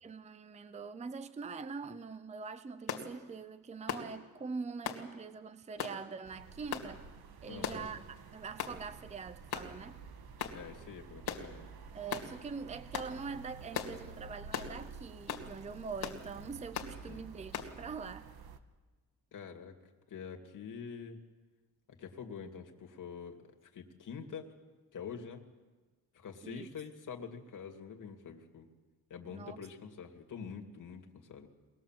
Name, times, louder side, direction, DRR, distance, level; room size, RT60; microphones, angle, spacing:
voice 1, 0.0-7.1 7.4-8.0 8.3-10.0 11.9-18.3 26.4-26.7 29.3-29.6, right 5 dB, 20° right, 13 dB, 0.6 m, -43 dB
sound 1, 2.9-3.1 3.9-4.1 4.8-5.0 5.8-6.0 6.7-6.9 7.6-7.9 8.6-8.8 9.5-9.7 10.4-10.6 11.3-11.5 12.1-12.3 12.9-13.1 13.7-13.9 14.5-14.7 15.3-15.5 16.0-16.2 16.7-16.9 17.5-17.7, left 8 dB, 90° left, 2.2 m, -38 dB
sound 2, 6.2-18.6, right 5 dB, 80° right, 1.4 m, -51 dB
voice 2, 7.5-7.9 10.5-11.7 17.1-17.2 19.3-19.7 20.1-21.2 22.0-24.5 24.9-25.4 26.1-28.7 29.1-31.5, left 6 dB, 55° left, 3 dB, 2.4 m, -46 dB
23.5 x 19.5 x 7.5 m, 1.3 s
wide cardioid pair, 155°, 37 cm